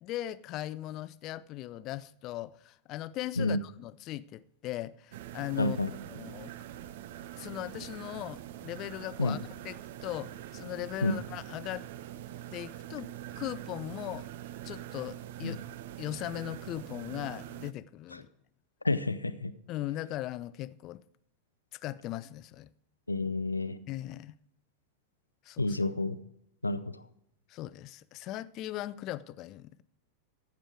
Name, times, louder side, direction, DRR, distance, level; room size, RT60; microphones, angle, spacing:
voice 1, 0.0-5.8 6.1-6.5 7.3-9.4 9.6-11.8 12.5-14.3 14.6-15.6 16.0-18.3 19.7-21.0 21.7-22.7 23.9-24.3 25.4-25.8 27.5-29.8, left 14 dB, 35° left, 0.5 m, -39 dB
sound 1, 5.1-17.7, right 12 dB, 55° right, 0.5 m, -44 dB
voice 2, 5.6-5.9 9.2-9.3 11.0-11.1 15.4-15.6 18.8-19.5 23.1-23.8 25.6-26.2 26.6-26.8, left 2 dB, 80° left, 0.6 m, -29 dB
15.0 x 7.5 x 4.8 m
figure-of-eight pair, 90°, 0 cm